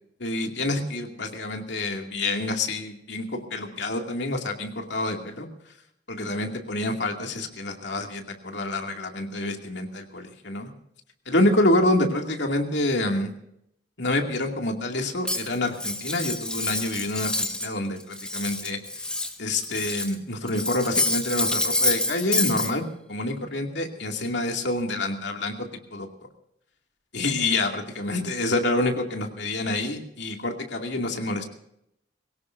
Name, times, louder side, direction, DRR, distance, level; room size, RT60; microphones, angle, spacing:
voice 1, 0.2-5.5 6.1-10.7 11.3-13.3 14.0-19.1 19.4-22.8 23.1-25.5 25.9-26.1 27.1-31.5, left 2 dB, 70° left, 3 dB, 2.4 m, -27 dB
Cutlery silverware, 15.3-17.7 18.0-20.2 20.5-22.7, left 2 dB, 5° left, 1.2 m, -27 dB
22.5 x 18.0 x 2.6 m, 0.75 s
head